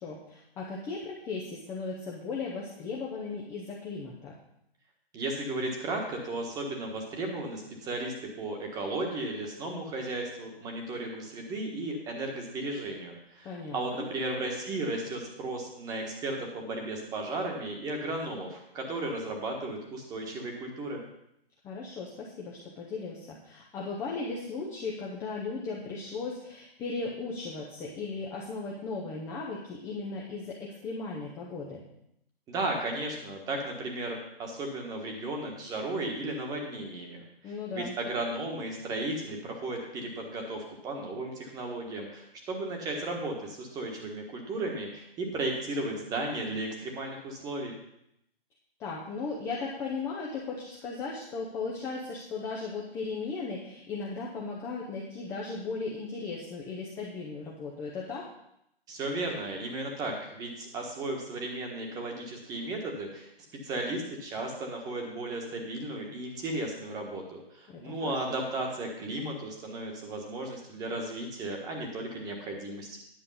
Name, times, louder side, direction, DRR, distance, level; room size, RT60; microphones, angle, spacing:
voice 1, 0.0-4.4 13.4-14.1 21.6-31.8 37.4-38.0 48.8-58.3 67.7-68.4, left 4 dB, 10° left, -3 dB, 0.7 m, -37 dB
voice 2, 5.1-21.0 32.5-47.7 58.9-63.3 63.6-73.0, right 2 dB, 10° right, 1 dB, 1.4 m, -35 dB
10.5 x 6.6 x 5.5 m, 0.78 s
hypercardioid pair, 150°, 31 cm